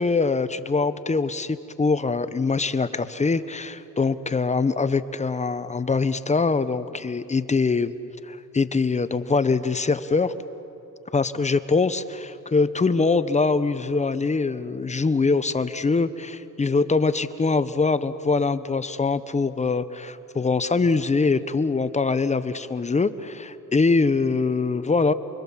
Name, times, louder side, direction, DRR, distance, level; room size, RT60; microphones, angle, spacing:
voice 1, 0.0-7.9 8.3-10.3 11.1-25.1, left 4 dB, 25° left, 13 dB, 0.9 m, -23 dB
29.0 x 23.0 x 7.4 m, 3.0 s
cardioid pair, 90°, 30 cm